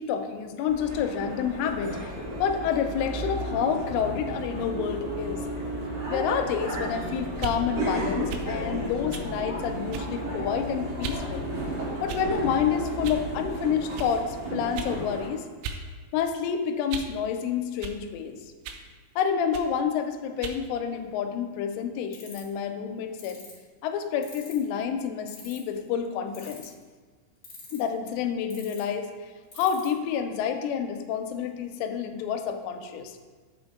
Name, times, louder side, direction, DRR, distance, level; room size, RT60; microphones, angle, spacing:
voice 1, 0.0-5.5 6.1-11.5 12.0-15.5 16.1-18.5 19.2-23.4 23.8-26.7 27.7-29.3 29.6-33.2, left 7 dB, 85° left, 6 dB, 3.0 m, -29 dB
sound 1, 0.6-15.3, right 1 dB, 60° right, 1.7 m, -33 dB
sound 2, 7.3-7.6 8.3-8.5 9.1-9.3 9.9-10.2 11.0-11.2 12.1-12.5 13.0-13.2 14.0-14.1 14.8-15.0 15.6-15.8 16.2-17.2 17.8-18.0 18.6-18.9 19.5-19.7 20.4-20.6, right 5 dB, 90° right, 3.1 m, -37 dB
sound 3, 22.1-22.5 23.2-23.5 24.2-24.6 25.3-25.8 26.3-26.8 27.4-27.9 28.5-28.8 29.5-29.9, left 6 dB, 40° left, 1.7 m, -44 dB
8.4 x 5.2 x 3.5 m, 1.5 s
omnidirectional pair, 5.6 m